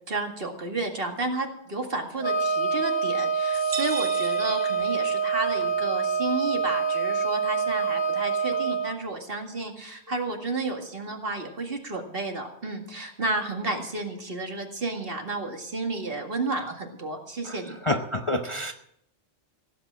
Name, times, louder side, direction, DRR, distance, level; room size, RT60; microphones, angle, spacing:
voice 1, 0.1-17.8, right 2 dB, 50° right, 3 dB, 2.2 m, -32 dB
Wind instrument woodwind instrument, 2.2-8.9, right 5 dB, 55° left, 1.8 m, -26 dB
sound 1, 3.5-5.5, right 6 dB, 85° right, 1.9 m, -37 dB
voice 2, 17.9-18.7, left 1 dB, 30° left, 4 dB, 0.8 m, -27 dB
17.0 x 8.4 x 7.4 m, 0.73 s
omnidirectional pair, 1.3 m